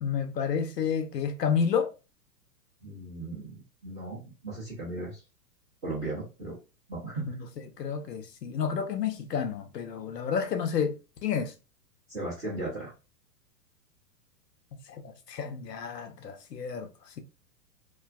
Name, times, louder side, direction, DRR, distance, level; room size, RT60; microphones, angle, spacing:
voice 1, 0.0-1.9 7.3-7.4 7.8-10.9 11.2-11.5 14.9-16.9, left 7 dB, 80° left, 0.6 m, -30 dB
voice 2, 2.8-5.2 5.8-6.6 6.9-7.4 12.1-12.9, right 2 dB, 10° right, 0.3 m, -36 dB
2.4 x 2.2 x 2.3 m
figure-of-eight pair, 105°, 49 cm